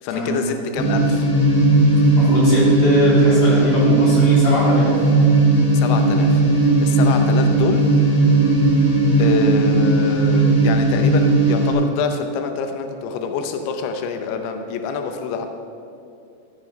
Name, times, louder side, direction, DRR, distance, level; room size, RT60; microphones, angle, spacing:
voice 1, 0.0-1.3 5.7-7.9 9.2-15.5, left 5 dB, 90° left, 6 dB, 3.1 m, -26 dB
sound 1, 0.8-11.7, right 2 dB, 60° left, 4.8 m, -16 dB
voice 2, 2.2-4.9, left 1 dB, 25° left, -7 dB, 3.7 m, -21 dB
14.5 x 8.6 x 5.3 m, 2.5 s
omnidirectional pair, 5.2 m